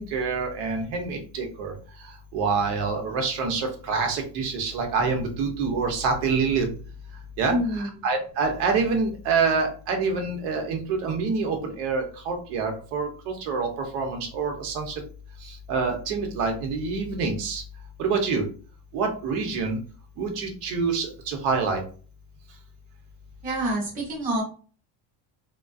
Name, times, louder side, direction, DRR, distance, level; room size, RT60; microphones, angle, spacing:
voice 1, 0.0-1.7 2.3-6.7 7.4-14.9 15.4-17.6 18.0-18.4 18.9-19.8 20.2-21.8, right 4 dB, 85° right, 3 dB, 0.9 m, -26 dB
voice 2, 7.5-8.0 23.4-24.4, right 1 dB, 15° right, -4 dB, 0.7 m, -27 dB
2.5 x 2.2 x 2.3 m, 0.40 s
cardioid pair, 175°, 49 cm